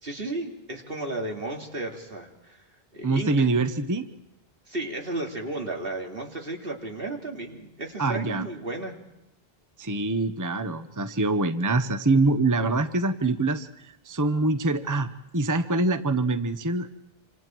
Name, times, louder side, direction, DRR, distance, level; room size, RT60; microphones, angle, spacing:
voice 1, 0.0-2.6 2.9-3.4 4.7-8.9, right 2 dB, 65° right, 2 dB, 3.3 m, -34 dB
voice 2, 3.0-4.1 8.0-8.5 9.8-16.9, right 2 dB, 20° right, 10 dB, 0.8 m, -25 dB
27.5 x 27.0 x 4.6 m, 0.89 s
omnidirectional pair, 1.0 m